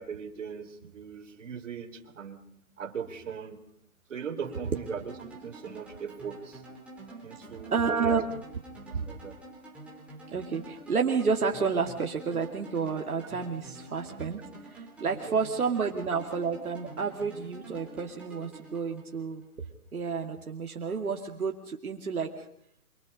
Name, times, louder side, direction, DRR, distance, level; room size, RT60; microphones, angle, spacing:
voice 1, 0.0-2.4 2.8-3.6 4.1-6.6 7.2-8.2 8.8-9.4 15.3-15.4, right 7 dB, 55° right, 6 dB, 3.9 m, -39 dB
sound 1, 4.4-19.5, right 2 dB, 5° right, 3.9 m, -48 dB
voice 2, 7.7-8.2 8.9-9.1 10.3-19.4 19.9-22.5, right 5 dB, 80° right, 2 dB, 2.6 m, -30 dB
26.5 x 26.0 x 5.5 m, 0.66 s
hypercardioid pair, 165°, 43 cm